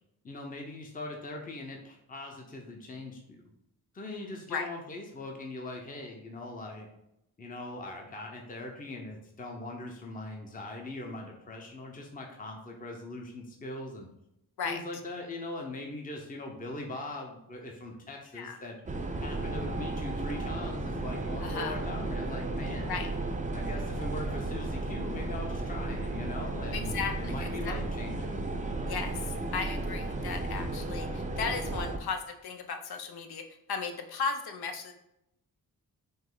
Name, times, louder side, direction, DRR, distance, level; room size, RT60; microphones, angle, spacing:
voice 1, 0.2-3.4 3.9-6.9 7.4-14.1 14.6-18.8 19.2-23.0 23.5-28.5, left 2 dB, 20° left, 2 dB, 0.7 m, -41 dB
sound 1, 18.9-32.0, right 2 dB, 20° right, 0.5 m, -34 dB
voice 2, 21.4-21.8 22.9-23.2 26.7-27.8 28.9-34.9, left 5 dB, 80° left, 6 dB, 0.6 m, -36 dB
5.1 x 2.0 x 3.8 m, 0.84 s
cardioid pair, 65°, 38 cm